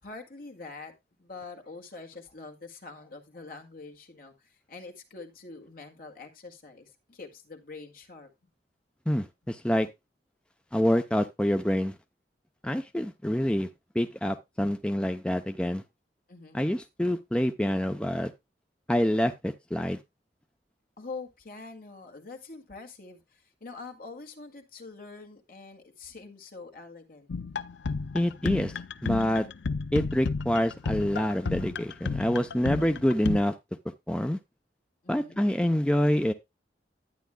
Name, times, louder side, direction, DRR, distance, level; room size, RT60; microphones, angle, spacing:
voice 1, 0.0-8.3 16.3-16.7 21.0-27.3 35.0-35.4, left 3 dB, 55° left, 2.1 m, -45 dB
voice 2, 9.1-9.9 10.7-11.9 12.6-13.7 13.9-15.8 16.5-18.3 18.9-20.0 28.1-28.7 29.0-29.5 29.9-33.5 34.1-34.4 35.1-36.3, equal, 5° left, 0.6 m, -26 dB
sound 1, 27.3-33.4, left 4 dB, 80° left, 0.6 m, -32 dB
11.5 x 9.4 x 2.2 m
head